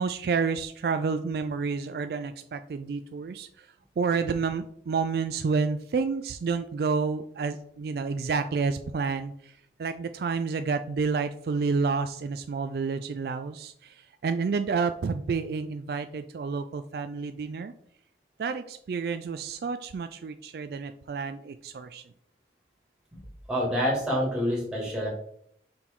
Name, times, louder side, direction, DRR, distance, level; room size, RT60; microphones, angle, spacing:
voice 1, 0.0-3.7 4.0-9.5 9.8-17.7 18.4-22.0, right 5 dB, 55° right, 9 dB, 0.3 m, -29 dB
voice 2, 23.5-25.1, equal, 5° right, -5 dB, 2.2 m, -27 dB
5.9 x 4.5 x 3.7 m, 0.69 s
head